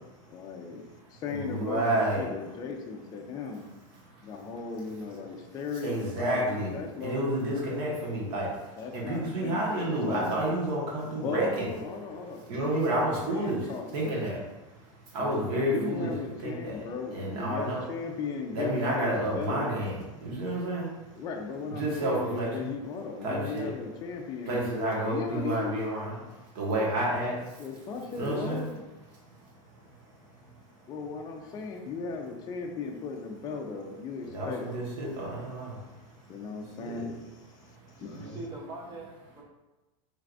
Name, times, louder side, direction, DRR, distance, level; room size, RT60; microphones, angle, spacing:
voice 1, 0.3-0.8 1.1-1.8 2.2-3.7 4.2-7.7 8.8-10.4 11.2-14.2 15.2-19.7 21.1-24.6 25.0-25.8 27.6-28.7 30.9-34.8 36.3-37.1 38.0-38.4, left 5 dB, 25° left, 1 dB, 0.5 m, -37 dB
voice 2, 1.3-2.3 4.0-4.1 5.8-11.7 12.5-16.1 16.4-16.8 17.1-17.8 18.5-21.1 21.7-22.7 23.2-23.7 24.4-27.6 28.1-28.7 29.4-29.8 30.1-30.3 34.2-36.3 36.6-37.0 37.7-38.4, right 1 dB, 50° right, -4 dB, 1.5 m, -31 dB
voice 3, 38.0-39.4, right 2 dB, 20° right, -1 dB, 0.8 m, -42 dB
4.6 x 3.2 x 2.5 m, 1.1 s
supercardioid pair, 155°, 17 cm